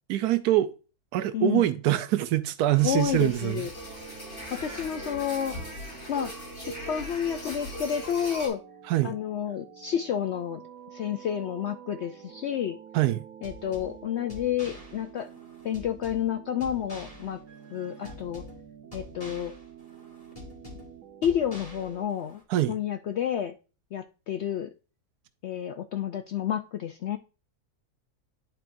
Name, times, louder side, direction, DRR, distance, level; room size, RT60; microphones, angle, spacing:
voice 1, 0.1-0.7 1.1-3.7 8.9-9.2 12.9-13.2 22.5-22.7, right 14 dB, 90° right, 1.1 m, -24 dB
voice 2, 1.3-1.7 2.8-3.7 4.5-5.6 6.1-8.6 9.0-10.6 10.9-12.8 13.4-15.3 15.6-17.4 17.7-18.4 18.9-19.5 21.2-22.4 22.7-23.6 23.9-24.7 25.4-27.2, left 9 dB, 70° left, 0.6 m, -30 dB
sound 1, 2.7-8.5, equal, 50° left, 4.0 m, -39 dB
sound 2, 3.7-22.1, right 9 dB, 65° right, 1.1 m, -49 dB
sound 3, 13.4-22.4, left 2 dB, 25° left, 2.2 m, -47 dB
11.0 x 4.5 x 2.6 m
omnidirectional pair, 1.6 m